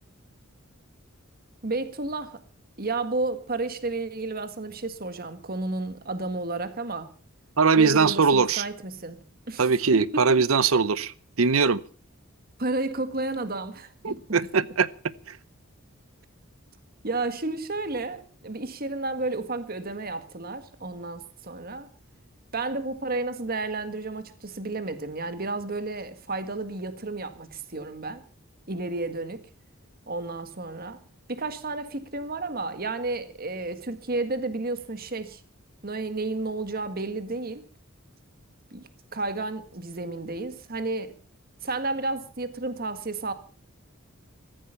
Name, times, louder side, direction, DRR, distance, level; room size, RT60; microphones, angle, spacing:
voice 1, 1.6-2.4 2.8-7.1 7.8-9.2 9.5-10.3 12.6-14.2 17.0-21.9 22.5-28.2 28.7-29.4 30.1-31.0 31.3-35.4 35.8-37.6 38.7-41.1 41.6-43.3, right 2 dB, 45° right, 1.8 m, -32 dB
voice 2, 7.6-8.6 9.6-11.8 14.0-14.9 15.3-15.4, right 5 dB, 80° right, 0.8 m, -21 dB
15.0 x 14.5 x 5.7 m
head